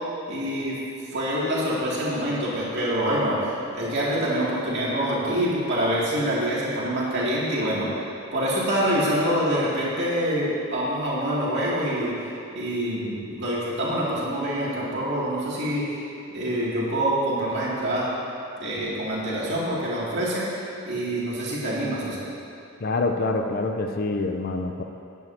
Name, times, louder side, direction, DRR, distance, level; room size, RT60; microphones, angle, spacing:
voice 1, 0.3-0.8 1.1-8.0 8.3-12.2 12.5-16.0 16.3-18.1 18.6-20.5 20.8-22.2, equal, 50° right, -7 dB, 2.5 m, -26 dB
voice 2, 22.8-24.8, left 3 dB, 45° left, 5 dB, 0.5 m, -26 dB
15.5 x 9.3 x 2.9 m, 2.6 s
head